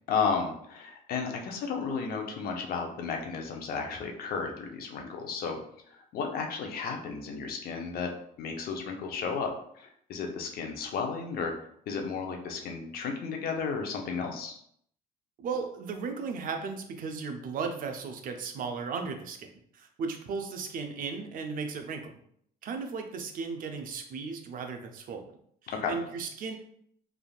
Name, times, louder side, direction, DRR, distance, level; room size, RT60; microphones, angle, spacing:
voice 1, 0.1-5.6 5.9-8.1 8.4-11.5 11.9-14.5 25.7-26.0, left 5 dB, 60° left, 3 dB, 0.6 m, -33 dB
voice 2, 15.4-22.1 22.6-25.3 25.9-26.6, right 5 dB, 55° right, 5 dB, 0.5 m, -36 dB
3.3 x 2.4 x 2.3 m, 0.67 s
cardioid pair, 110°, 17 cm